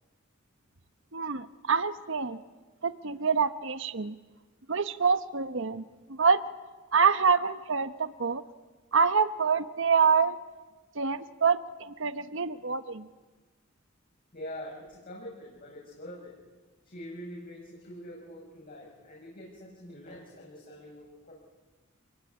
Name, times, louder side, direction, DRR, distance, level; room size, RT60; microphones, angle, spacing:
voice 1, 1.1-2.4 2.8-4.2 4.7-6.4 6.9-8.4 8.9-10.4 10.9-13.1, right 5 dB, 70° right, 11 dB, 1.1 m, -26 dB
voice 2, 14.3-16.4 16.8-21.3, equal, 45° left, -3 dB, 7.3 m, -44 dB
27.5 x 20.5 x 10.0 m, 1.3 s
head